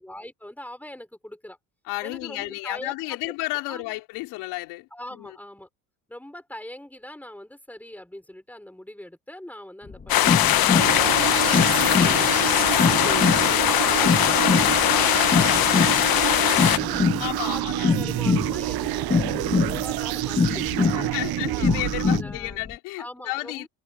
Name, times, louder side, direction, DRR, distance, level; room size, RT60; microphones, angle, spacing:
voice 1, 0.0-1.6 2.0-2.9 3.3-3.4 3.7-3.8 4.9-5.7 6.1-11.5 11.9-21.3 22.0-22.6 23.0-23.7, left 1 dB, 5° left, 5.5 m, -41 dB
voice 2, 1.8-5.4 11.7-12.4 15.8-16.1 17.2-17.9 20.8-23.7, left 21 dB, 90° left, 4.3 m, -33 dB
sound 1, 9.9-22.7, left 5 dB, 25° left, 1.6 m, -25 dB
sound 2, 10.1-16.8, left 13 dB, 65° left, 1.4 m, -21 dB
sound 3, 10.7-22.2, right 18 dB, 70° right, 0.7 m, -28 dB
supercardioid pair, 80°, 38 cm